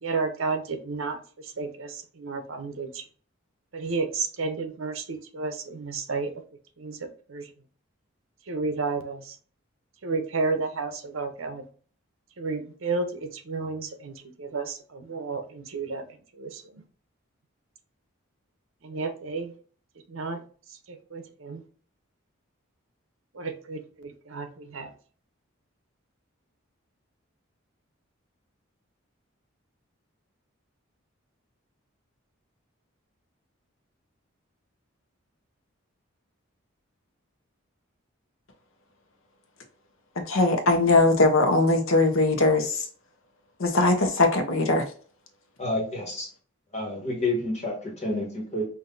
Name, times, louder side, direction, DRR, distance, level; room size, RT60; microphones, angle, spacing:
voice 1, 0.0-3.0 3.7-6.3 6.8-7.0 7.3-7.5 8.5-9.4 10.0-11.6 12.4-16.1 16.4-16.8 18.8-19.5 20.1-20.4 20.9-21.6 23.3-24.9, right 4 dB, 75° right, 7 dB, 0.7 m, -32 dB
voice 2, 40.3-42.8 43.6-44.8, left 2 dB, 75° left, 4 dB, 0.9 m, -20 dB
voice 3, 45.6-46.3 46.7-48.6, left 1 dB, 30° left, -1 dB, 1.4 m, -29 dB
5.6 x 2.6 x 2.6 m, 0.43 s
head